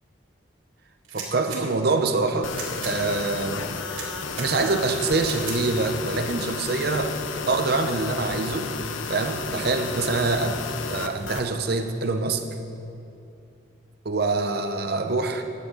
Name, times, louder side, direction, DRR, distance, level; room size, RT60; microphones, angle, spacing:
sound 1, 1.0-1.6 2.4-2.9 3.9-4.5 5.2-5.6, right 5 dB, 80° right, 2.5 m, -36 dB
voice 1, 1.1-2.5 2.8-3.7 4.4-7.1 7.5-8.7 9.1-10.6 10.9-12.4 14.0-15.4, right 3 dB, 50° right, 6 dB, 0.8 m, -25 dB
sound 2, 2.4-11.5, left 4 dB, 75° left, 0.6 m, -33 dB
14.0 x 9.7 x 3.9 m, 2.7 s
head